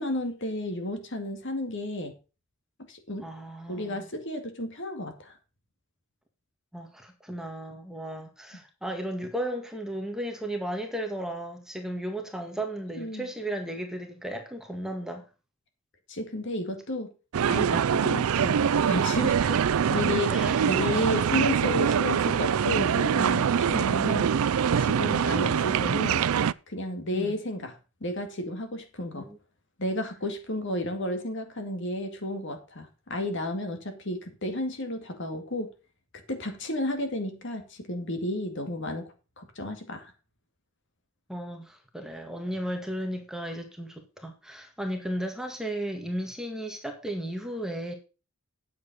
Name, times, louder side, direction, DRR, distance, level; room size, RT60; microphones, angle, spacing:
voice 1, 0.0-2.1 2.9-3.3 3.7-5.4 13.0-13.3 16.1-17.1 17.5-19.4 19.9-24.3 24.8-26.3 26.7-29.3 29.8-35.7 36.3-40.1, left 1 dB, 55° left, 2.3 m, -32 dB
voice 2, 3.2-4.1 6.7-15.2 19.4-19.6 20.3-20.6 27.1-27.4 29.1-29.4 41.3-47.9, right 1 dB, ahead, 1.8 m, -35 dB
sound 1, 17.3-26.5, right 7 dB, 75° right, 0.4 m, -24 dB
9.6 x 7.8 x 5.4 m
head